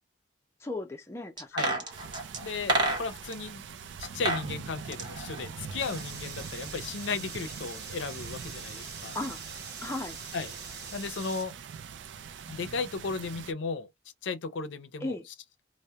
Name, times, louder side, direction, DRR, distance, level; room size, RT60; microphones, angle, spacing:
voice 1, 0.6-1.8 9.1-9.4 9.8-10.2 15.0-15.2, left 2 dB, 15° left, 0.4 m, -36 dB
sound 1, 1.4-3.4 4.0-4.5 4.8-6.1 6.4-6.5, right 2 dB, 25° right, 0.6 m, -30 dB
sound 2, 1.9-13.5, right 6 dB, 80° right, 0.3 m, -43 dB
voice 2, 2.4-3.6 4.0-9.2 10.3-10.5 10.9-11.5 12.5-13.9 14.2-15.3, left 4 dB, 90° left, 0.5 m, -35 dB
sound 3, 5.8-11.4, right 5 dB, 55° right, 0.9 m, -44 dB
2.2 x 2.0 x 2.7 m
head